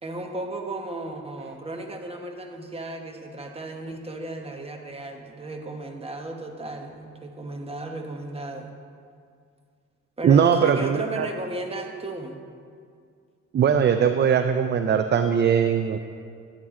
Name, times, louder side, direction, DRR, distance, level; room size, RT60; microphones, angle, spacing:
voice 1, 0.0-8.7 10.2-12.4, right 2 dB, 20° right, 3 dB, 1.1 m, -35 dB
voice 2, 10.2-11.3 13.5-16.0, right 7 dB, 35° right, 8 dB, 0.4 m, -20 dB
10.5 x 8.7 x 3.7 m, 2.2 s
cardioid pair, 90°, 30 cm